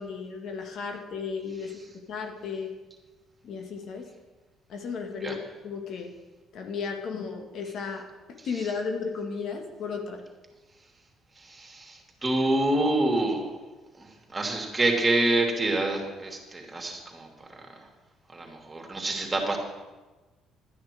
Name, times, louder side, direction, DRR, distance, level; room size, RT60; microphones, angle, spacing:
voice 1, 0.0-1.7 2.1-2.7 3.4-4.1 4.7-6.1 6.5-8.0 8.4-10.2, left 5 dB, 60° left, 4 dB, 1.6 m, -34 dB
voice 2, 11.4-13.5 14.0-14.1 14.3-17.3 18.3-19.6, right 2 dB, 25° right, 1 dB, 3.0 m, -27 dB
12.0 x 9.9 x 4.7 m, 1.2 s
hypercardioid pair, 55°, 0 cm